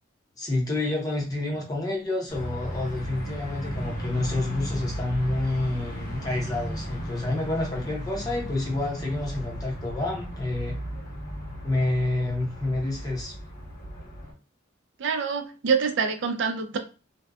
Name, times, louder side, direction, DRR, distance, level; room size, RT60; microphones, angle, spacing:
voice 1, 0.4-10.8 11.6-13.3, left 2 dB, 20° left, -2 dB, 0.6 m, -28 dB
sound 1, 2.3-14.3, equal, 45° left, 1.0 m, -35 dB
voice 2, 15.0-16.8, right 5 dB, 70° right, 6 dB, 0.4 m, -26 dB
2.6 x 2.2 x 2.2 m, 0.34 s
head